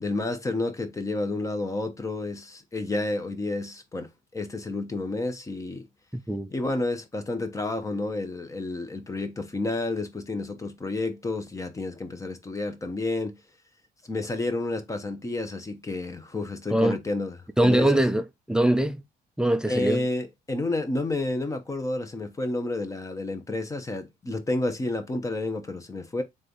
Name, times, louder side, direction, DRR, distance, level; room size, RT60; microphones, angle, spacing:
voice 1, 0.0-5.9 6.5-13.4 14.0-18.0 19.7-26.2, left 2 dB, 20° left, 0.9 m, -30 dB
voice 2, 6.1-6.5 16.7-17.0 17.6-19.0 19.4-20.0, right 1 dB, 5° right, 0.5 m, -23 dB
3.5 x 3.3 x 3.9 m
cardioid pair, 110°, 17 cm